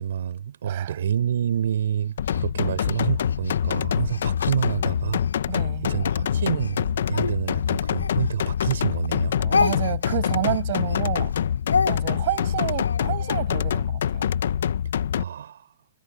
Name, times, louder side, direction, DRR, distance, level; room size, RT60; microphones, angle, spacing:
voice 1, 0.0-5.3 5.8-9.4 15.1-15.7, right 9 dB, 70° right, 5.2 m, -28 dB
voice 2, 0.7-1.0 2.6-2.8 5.5-5.9 9.4-11.3 11.8-14.2, right 17 dB, 55° right, 7.5 m, -30 dB
sound 1, 2.2-15.2, left 9 dB, 70° left, 1.1 m, -25 dB
Speech, 2.3-5.4 5.9-8.8 9.0-13.4, left 5 dB, 85° left, 6.1 m, -30 dB
hypercardioid pair, 115°, 0 cm